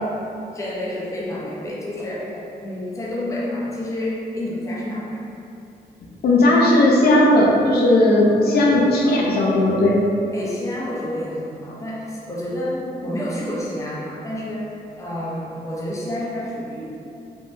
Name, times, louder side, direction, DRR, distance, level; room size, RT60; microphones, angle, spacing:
voice 1, 0.5-5.2 8.1-8.8 10.3-16.8, left 1 dB, 20° left, -5 dB, 0.5 m, -29 dB
voice 2, 6.2-10.0, left 1 dB, 70° left, -3 dB, 0.4 m, -16 dB
3.3 x 2.1 x 2.5 m, 2.7 s
cardioid pair, 115°, 17 cm